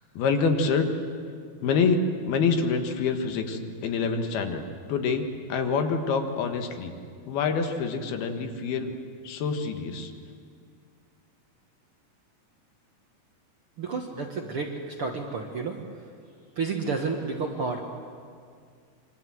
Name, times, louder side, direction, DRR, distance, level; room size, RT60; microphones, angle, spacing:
voice 1, 0.2-0.9 1.6-2.0 2.3-4.6 4.9-7.0 7.3-8.9 9.3-10.1, left 5 dB, 80° left, 6 dB, 3.5 m, -26 dB
voice 2, 13.8-15.8 16.5-17.8, right 4 dB, 55° right, 2 dB, 1.6 m, -30 dB
27.0 x 24.0 x 7.8 m, 2.2 s
omnidirectional pair, 4.4 m